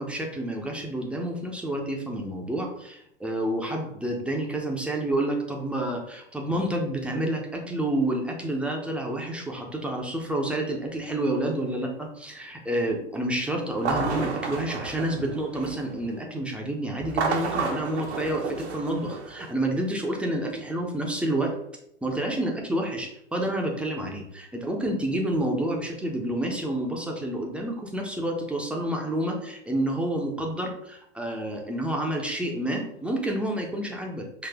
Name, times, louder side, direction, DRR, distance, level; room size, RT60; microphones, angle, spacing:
voice 1, 0.0-21.5 22.0-34.5, right 1 dB, 5° right, 1 dB, 0.7 m, -29 dB
sound 1, 13.7-15.9 17.0-19.5, right 4 dB, 65° right, 1.0 m, -31 dB
6.0 x 2.5 x 3.5 m, 0.75 s
figure-of-eight pair, 100°, 36 cm